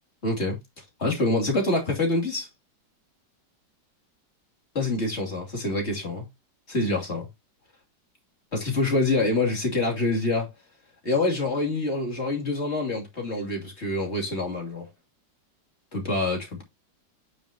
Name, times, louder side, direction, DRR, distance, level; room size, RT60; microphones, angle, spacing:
voice 1, 0.2-0.6 1.0-2.5 4.8-6.3 6.7-7.3 8.5-10.5 11.0-14.9 15.9-16.6, left 2 dB, 35° left, 2.9 m, -26 dB
9.1 x 6.3 x 2.8 m
omnidirectional pair, 2.0 m